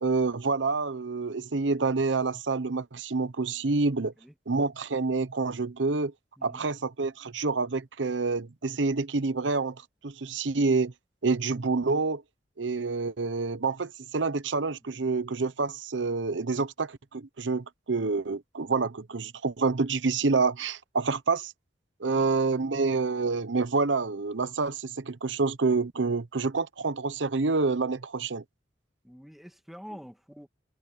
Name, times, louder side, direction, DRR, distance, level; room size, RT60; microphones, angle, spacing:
voice 1, 0.0-4.1 4.5-6.1 6.4-9.8 10.0-10.9 11.2-12.2 12.6-21.5 22.0-28.4, right 4 dB, 90° right, 0.9 m, -27 dB
voice 2, 6.4-6.7 22.0-22.3 29.0-30.5, equal, ahead, 2.3 m, -47 dB
head